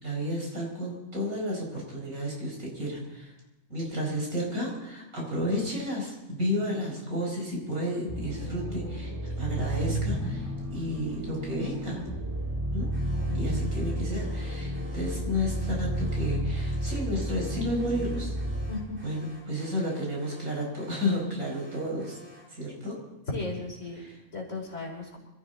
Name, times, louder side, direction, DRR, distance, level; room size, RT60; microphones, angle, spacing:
voice 1, 0.0-3.3 3.7-12.1 12.7-12.9 13.3-18.4 19.0-22.2 22.5-23.0 24.0-24.2, left 1 dB, 80° right, -2 dB, 5.4 m, -32 dB
sound 1, 8.1-18.7, right 1 dB, 15° right, 2.2 m, -32 dB
Alarm, 12.9-22.6, left 2 dB, 45° right, 4.9 m, -52 dB
voice 2, 18.7-19.0 23.3-24.0 24.3-25.2, left 3 dB, 55° left, -1 dB, 4.1 m, -35 dB
25.5 x 14.5 x 3.9 m, 1.0 s
omnidirectional pair, 1.5 m